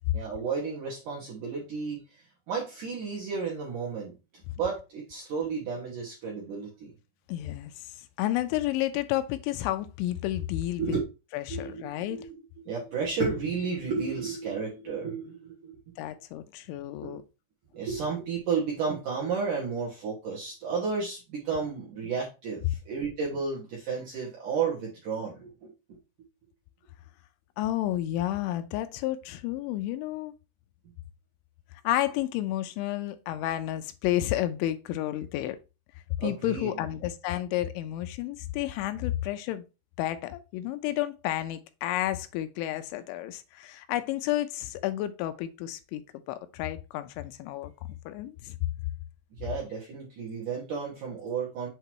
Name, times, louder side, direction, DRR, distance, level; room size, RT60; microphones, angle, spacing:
voice 1, 0.1-2.2 2.5-4.1 4.6-6.9 10.8-11.0 11.5-15.8 17.0-17.2 17.7-25.7 36.2-36.7 49.4-51.7, right 5 dB, 65° right, 2.0 m, -32 dB
voice 2, 7.3-7.9 8.2-11.0 11.3-12.3 16.0-17.2 27.6-30.3 31.8-35.6 36.2-39.6 40.0-47.7 48.1-48.6, left 14 dB, 85° left, 2.9 m, -31 dB
7.8 x 2.9 x 4.5 m
omnidirectional pair, 5.5 m